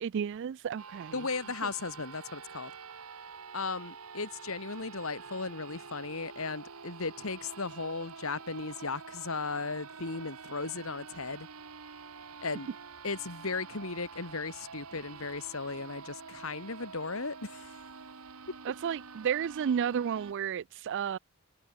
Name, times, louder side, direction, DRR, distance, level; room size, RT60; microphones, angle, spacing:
voice 1, 0.0-1.1 18.8-21.2, right 8 dB, 55° right, 0.3 m, -32 dB
sound 1, 0.8-20.3, right 5 dB, 80° right, 1.5 m, -47 dB
voice 2, 1.1-2.7 3.5-11.5 12.4-12.7 13.0-17.8, left 4 dB, 65° left, 2.1 m, -36 dB
head